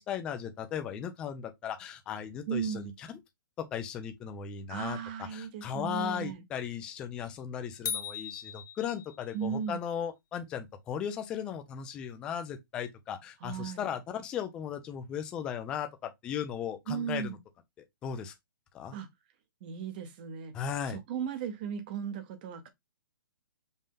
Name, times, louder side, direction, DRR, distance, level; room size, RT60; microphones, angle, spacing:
voice 1, 0.0-2.8 3.6-5.0 5.3-17.4 18.0-18.3 18.7-18.9 20.5-21.0, left 8 dB, 5° left, 0.3 m, -36 dB
voice 2, 2.5-2.9 4.7-6.4 9.3-9.9 13.4-13.9 16.9-17.4 18.9-19.1 19.6-20.5 20.8-22.7, right 8 dB, 25° right, 0.8 m, -36 dB
sound 1, 7.9-9.4, left 8 dB, 50° left, 1.3 m, -38 dB
5.2 x 2.7 x 3.6 m
hypercardioid pair, 170°, 12 cm